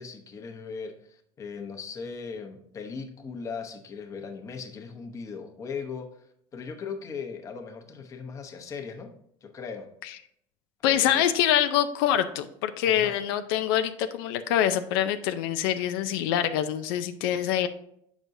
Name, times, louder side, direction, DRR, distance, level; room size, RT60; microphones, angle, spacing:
voice 1, 0.0-6.3 6.5-9.1 9.4-9.9 10.8-11.3 12.9-13.2, left 5 dB, 25° left, 4 dB, 0.9 m, -38 dB
voice 2, 10.8-17.7, left 11 dB, 90° left, 9 dB, 0.5 m, -25 dB
7.9 x 6.1 x 2.6 m, 0.71 s
cardioid pair, 140°, 12 cm